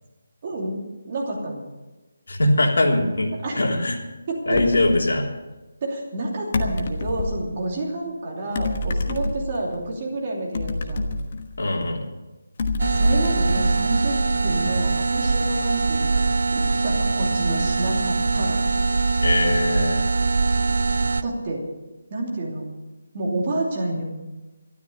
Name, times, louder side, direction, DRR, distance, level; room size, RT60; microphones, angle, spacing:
voice 1, 0.4-0.8 1.1-1.6 3.4-3.6 4.3-4.4 5.8-11.1 12.9-14.2 14.4-16.2 16.5-18.6 21.2-21.6 22.1-22.6 23.1-24.1, right 2 dB, 25° right, -2 dB, 2.8 m, -29 dB
voice 2, 2.3-4.0 4.5-5.3 11.6-12.0 19.2-20.0, left 1 dB, 75° left, 0 dB, 3.5 m, -21 dB
sound 1, 4.5-5.0 6.5-7.5 8.5-9.8 10.5-11.9 12.6-14.5, left 2 dB, 30° left, 1.2 m, -28 dB
sound 2, 12.8-21.2, right 3 dB, 65° right, 0.7 m, -22 dB
13.0 x 12.5 x 6.7 m, 1.1 s
hypercardioid pair, 175°, 0 cm